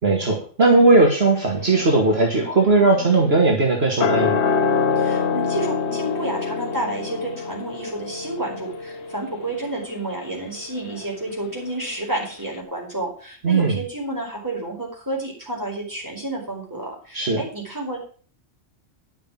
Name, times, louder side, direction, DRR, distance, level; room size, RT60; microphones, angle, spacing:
voice 1, 0.0-4.4 13.4-13.8 17.1-17.4, right 3 dB, 55° right, 0 dB, 2.2 m, -18 dB
sound 1, 1.6-11.9 12.2-12.3, left 5 dB, 65° left, 1.3 m, -27 dB
voice 2, 5.0-18.0, right 2 dB, 15° right, -2 dB, 4.9 m, -30 dB
10.5 x 6.8 x 7.4 m, 0.42 s
omnidirectional pair, 1.3 m